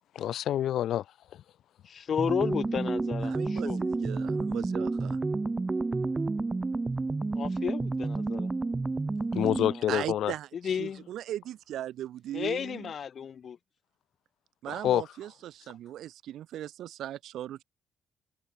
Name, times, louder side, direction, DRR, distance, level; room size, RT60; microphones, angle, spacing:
voice 1, 0.1-1.0 1.3-1.4 9.3-10.3 14.7-15.0, left 11 dB, 75° left, 0.7 m, -27 dB
voice 2, 1.9-3.8 7.3-8.5 9.7-9.8 10.5-11.1 12.3-13.6, left 7 dB, 55° left, 2.0 m, -33 dB
sound 1, 2.2-9.8, right 3 dB, 25° right, 3.8 m, -30 dB
voice 3, 3.2-5.2 9.9-12.9 14.6-17.6, right 12 dB, 80° right, 1.4 m, -38 dB
cardioid pair, 90°, 0 cm